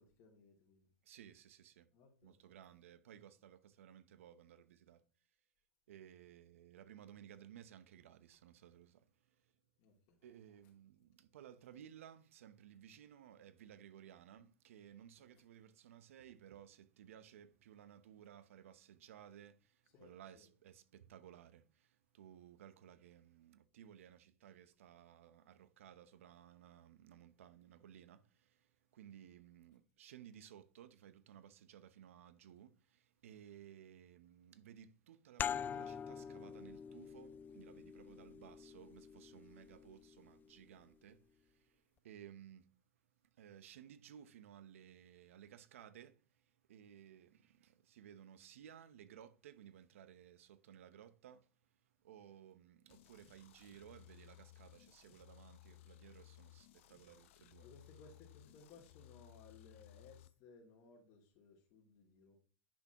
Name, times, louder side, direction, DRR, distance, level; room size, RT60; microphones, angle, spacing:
voice 1, 0.0-0.9 1.9-2.4 9.8-10.2 15.2-15.3 19.9-20.5 55.7-55.8 57.6-62.4, left 4 dB, 55° left, 2.6 m, -62 dB
voice 2, 1.0-1.9 2.2-5.0 5.9-9.5 10.2-42.7 43.3-51.5 52.0-57.7, right 10 dB, 80° right, 0.8 m, -58 dB
sound 1, 35.4-40.7, left 8 dB, 25° left, 0.3 m, -45 dB
sound 2, 52.9-60.3, left 15 dB, 70° left, 0.7 m, -61 dB
10.0 x 6.0 x 2.9 m
hypercardioid pair, 95°, 7 cm